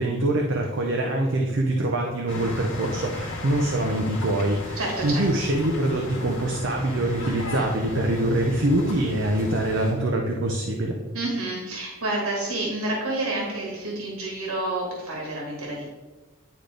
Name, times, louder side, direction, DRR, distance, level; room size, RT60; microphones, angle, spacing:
voice 1, 0.0-11.0, right 1 dB, 60° right, 1 dB, 0.7 m, -24 dB
sound 1, 2.3-9.9, left 1 dB, 55° left, 2.0 m, -35 dB
voice 2, 4.7-5.2 11.1-15.8, right 2 dB, 85° right, -2 dB, 1.5 m, -29 dB
9.9 x 3.9 x 3.4 m, 1.2 s
head